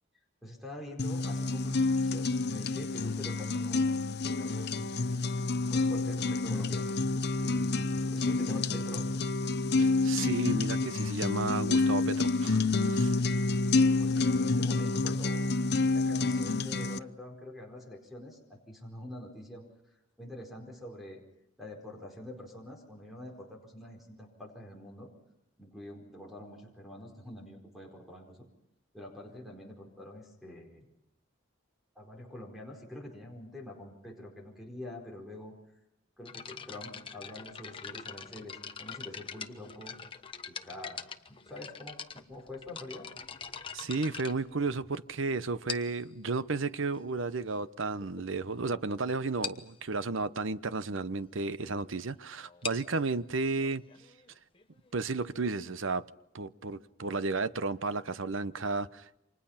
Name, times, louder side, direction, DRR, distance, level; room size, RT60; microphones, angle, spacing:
voice 1, 0.4-3.9 4.2-5.1 5.4-7.1 7.4-9.0 14.0-15.4 15.9-21.2 21.6-25.1 25.6-28.5 28.9-30.9 31.9-35.8 36.2-40.1 40.5-43.1, left 1 dB, ahead, 4.7 m, -46 dB
sound 1, 1.0-17.0, left 3 dB, 55° left, 0.8 m, -28 dB
voice 2, 9.8-12.6 12.9-13.1 43.7-53.8 54.9-56.0 56.3-59.2, right 3 dB, 70° right, 0.9 m, -33 dB
sound 2, 36.3-45.1 45.7-46.1 46.9-47.0 47.7-47.8 48.0-48.2 48.5-48.7 48.9-49.0 49.4-49.7 52.4-55.9, left 6 dB, 25° left, 1.2 m, -43 dB
29.5 x 26.0 x 5.8 m
head